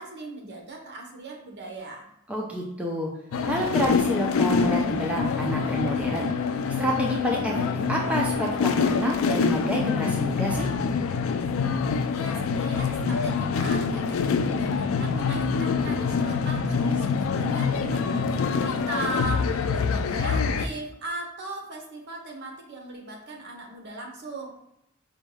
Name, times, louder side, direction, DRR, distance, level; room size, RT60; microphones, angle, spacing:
voice 1, 0.0-2.1 12.1-24.5, right 2 dB, 55° right, 0 dB, 0.9 m, -38 dB
voice 2, 2.3-3.1 3.4-6.3 6.8-7.6 7.9-10.7, equal, 5° right, -2 dB, 0.4 m, -28 dB
sound 1, 3.3-20.7, left 5 dB, 75° left, 0.3 m, -25 dB
5.2 x 2.2 x 3.1 m, 0.80 s
head